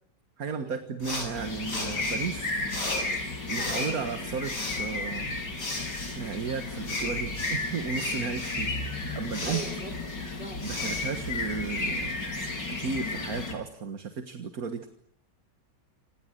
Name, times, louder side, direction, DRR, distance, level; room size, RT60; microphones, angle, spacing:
voice 1, 0.4-2.5 3.5-5.4 6.1-8.8 9.1-9.6 10.6-12.1 12.7-14.9, right 5 dB, 55° right, 8 dB, 2.0 m, -34 dB
sound 1, 1.0-12.0, left 2 dB, 70° left, 7.7 m, -38 dB
sound 2, 1.3-13.5, left 2 dB, 85° left, 4.8 m, -33 dB
voice 2, 9.4-10.0 10.4-10.7, right 2 dB, 35° right, 3 dB, 4.7 m, -40 dB
29.0 x 27.0 x 6.6 m, 0.70 s
omnidirectional pair, 1.9 m